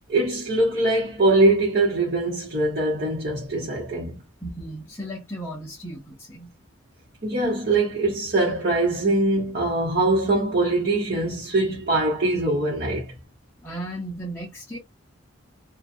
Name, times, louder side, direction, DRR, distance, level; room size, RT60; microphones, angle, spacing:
voice 1, 0.1-4.2 7.2-13.1, right 2 dB, 50° right, 0.9 m, -22 dB
voice 2, 4.4-6.5 13.6-14.8, right 1 dB, 10° left, 0.7 m, -35 dB
2.6 x 2.2 x 2.5 m
head